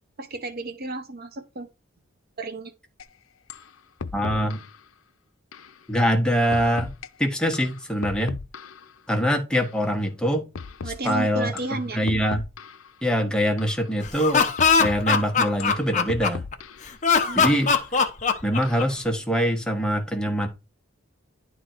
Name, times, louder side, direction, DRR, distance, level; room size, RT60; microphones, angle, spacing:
voice 1, 0.2-1.7 2.4-2.7 10.8-12.0 17.2-17.6, right 2 dB, 50° right, 1.0 m, -32 dB
sound 1, 3.0-3.1 3.5-3.7 4.0-4.8 5.5-5.7 6.5-7.1 7.5-8.9 9.5-9.7 10.5-11.1 11.6-11.8 12.1-12.9 13.6-13.8 14.6-15.1 15.6-16.9 17.6-17.8 18.6-19.0, left 4 dB, 75° left, 0.7 m, -37 dB
voice 2, 4.1-4.6 5.9-6.9 7.2-8.4 9.1-10.5 11.0-11.5 11.9-12.5 13.0-14.5 14.8-16.4 17.3-17.7 18.4-20.5, equal, 5° left, 1.6 m, -23 dB
Laughter, 14.0-16.5 17.0-19.1, left 5 dB, 35° left, 1.1 m, -21 dB
11.0 x 3.9 x 4.6 m
head